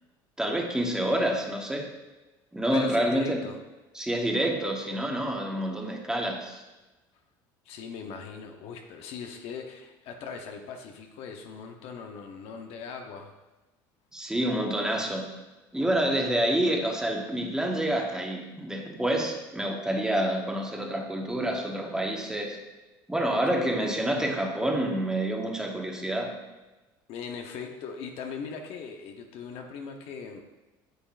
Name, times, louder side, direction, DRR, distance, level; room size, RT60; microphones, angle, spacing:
voice 1, 0.4-1.9 2.5-3.5 3.9-6.6 14.1-15.2 15.7-22.6 23.1-26.3, right 1 dB, 5° right, 1 dB, 1.3 m, -28 dB
voice 2, 2.7-3.6 7.6-13.3 23.8-23.9 27.1-30.4, left 5 dB, 65° left, 3 dB, 0.9 m, -39 dB
9.3 x 7.0 x 2.5 m, 1.1 s
supercardioid pair, 100°, 11 cm